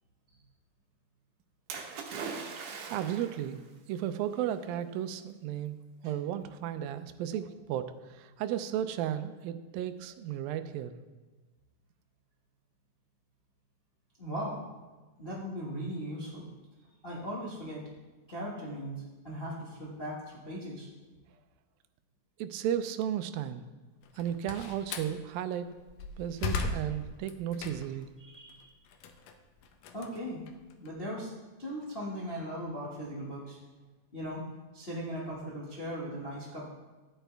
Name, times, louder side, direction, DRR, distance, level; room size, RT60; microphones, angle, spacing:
Splash splatter, 1.7-3.5 4.4-4.5, right 5 dB, 65° right, 2.4 m, -40 dB
voice 1, 2.9-3.6 3.9-5.8 6.0-11.0 22.4-23.6 24.2-25.7 26.2-28.1, right 10 dB, 85° right, 10 dB, 2.4 m, -34 dB
voice 2, 14.2-14.6 15.2-16.5 17.0-17.9 18.3-20.9 28.2-28.7 29.9-30.4 30.8-31.3 31.6-33.6 34.1-34.4 34.7-36.7, equal, 40° left, -6 dB, 0.8 m, -38 dB
Slam, 24.0-25.2 25.7-28.1 28.5-30.9, left 4 dB, 75° left, 2.2 m, -37 dB
13.0 x 9.1 x 3.4 m, 1.2 s
omnidirectional pair, 4.1 m